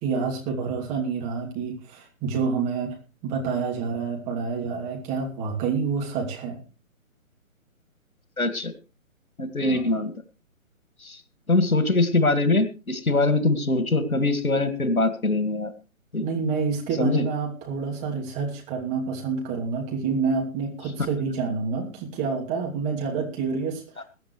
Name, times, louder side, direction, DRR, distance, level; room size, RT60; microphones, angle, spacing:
voice 1, 0.0-3.0 3.2-6.6 9.6-9.9 16.2-24.0, right 5 dB, 15° right, -1 dB, 2.8 m, -28 dB
voice 2, 8.4-8.7 9.4-10.1 11.0-11.2 11.5-15.7 16.1-16.2 17.0-17.2 24.0-24.1, left 2 dB, 80° left, 10 dB, 2.1 m, -23 dB
22.0 x 9.6 x 3.2 m, 0.33 s
figure-of-eight pair, 140°, 42 cm